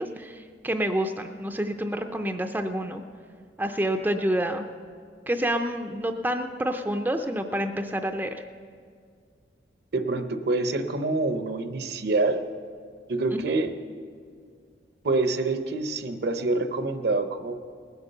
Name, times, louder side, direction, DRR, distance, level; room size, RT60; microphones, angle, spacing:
voice 1, 0.0-3.0 3.6-4.7 5.3-8.4 13.3-13.4, right 1 dB, 10° right, 6 dB, 0.5 m, -28 dB
voice 2, 9.9-12.4 13.1-13.7 15.0-17.6, right 3 dB, 60° right, 9 dB, 0.8 m, -26 dB
19.5 x 8.1 x 6.7 m, 2.1 s
head